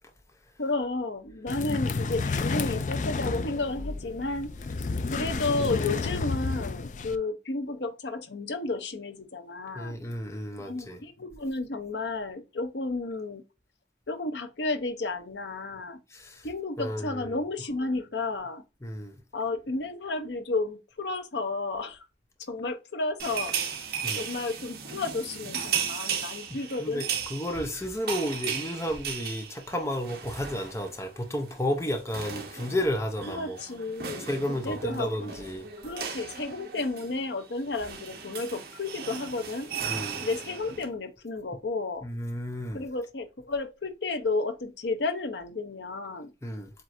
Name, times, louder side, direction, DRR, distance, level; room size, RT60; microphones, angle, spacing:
voice 1, 0.6-4.5 5.1-10.0 10.6-13.4 14.1-16.0 16.4-18.6 19.3-22.1 22.5-23.5 24.2-27.1 33.3-35.2 35.8-39.7 40.2-42.1 42.7-46.3, left 3 dB, 75° left, 0.8 m, -32 dB
sound 1, 1.5-7.2, left 4 dB, 45° left, 0.4 m, -31 dB
voice 2, 9.7-11.0 16.1-16.5 16.8-17.4 18.8-19.2 24.0-24.2 26.8-33.6 34.2-35.7 39.8-40.3 42.0-42.9 46.4-46.7, equal, 15° left, 0.7 m, -32 dB
sound 2, 23.2-31.1 31.3-31.5 31.8-40.9, right 7 dB, 60° right, 1.1 m, -36 dB
7.5 x 2.6 x 2.6 m
head